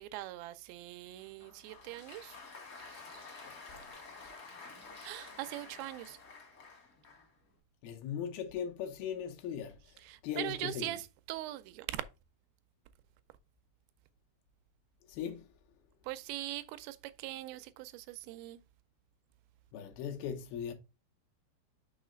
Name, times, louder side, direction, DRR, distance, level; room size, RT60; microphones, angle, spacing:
voice 1, 0.0-2.4 2.8-3.2 5.0-6.2 10.0-12.0 16.0-18.6, right 16 dB, 90° right, 2.4 m, -42 dB
Applause, 1.2-7.4, left 4 dB, 55° left, 0.9 m, -51 dB
voice 2, 3.5-3.8 7.8-9.8 10.2-11.0 15.1-15.4 19.7-20.7, left 8 dB, 90° left, 2.8 m, -39 dB
6.2 x 3.2 x 5.0 m
omnidirectional pair, 4.2 m